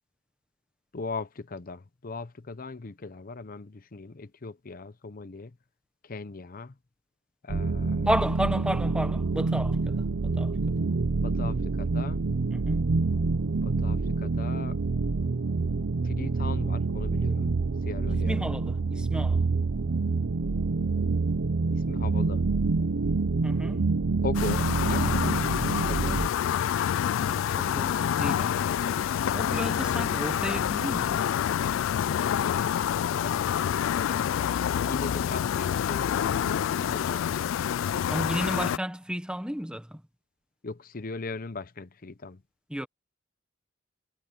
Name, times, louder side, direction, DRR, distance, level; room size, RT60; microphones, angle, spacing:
voice 1, 0.9-5.5 6.0-6.7 7.4-8.1 11.2-12.2 13.6-14.8 16.0-17.6 17.9-18.6 21.7-22.4 24.2-25.3 25.9-26.2 33.2-33.6 34.8-37.6 40.6-42.4, left 3 dB, 45° left, 0.8 m, -38 dB
sound 1, 7.5-26.3, right 3 dB, 75° right, 0.6 m, -27 dB
voice 2, 8.0-9.9 10.2-10.5 12.5-12.9 18.1-19.5 23.4-23.9 27.3-29.0 29.3-31.2 38.1-40.0 42.7-42.9, equal, 5° right, 1.2 m, -32 dB
sound 2, 24.3-38.8, left 9 dB, 85° left, 0.3 m, -27 dB
head